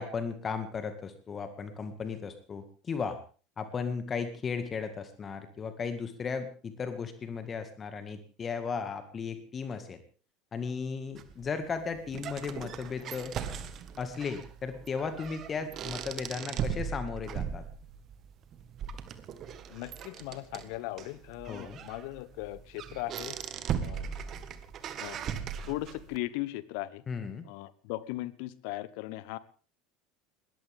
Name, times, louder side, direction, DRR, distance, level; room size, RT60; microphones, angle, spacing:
voice 1, 0.0-3.2 3.6-10.0 10.5-13.3 14.0-17.6 21.5-21.8 27.1-27.4, left 5 dB, 30° left, 9 dB, 2.1 m, -36 dB
sound 1, 11.2-26.2, right 8 dB, 40° right, 1.8 m, -39 dB
voice 2, 19.7-23.4 23.8-24.1 25.0-27.0 27.4-29.4, left 18 dB, 60° left, 18 dB, 1.1 m, -38 dB
21.0 x 18.5 x 3.7 m, 0.39 s
figure-of-eight pair, 70°, 0 cm